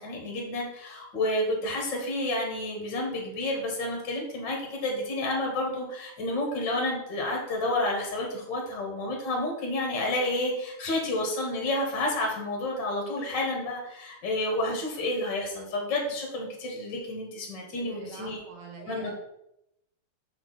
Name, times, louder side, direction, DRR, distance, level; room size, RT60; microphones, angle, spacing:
voice 1, 0.0-18.4 18.9-19.1, left 1 dB, 45° left, 0 dB, 1.7 m, -30 dB
voice 2, 17.8-19.1, right 4 dB, 65° right, 1 dB, 2.4 m, -45 dB
6.5 x 4.7 x 4.0 m, 0.81 s
omnidirectional pair, 3.4 m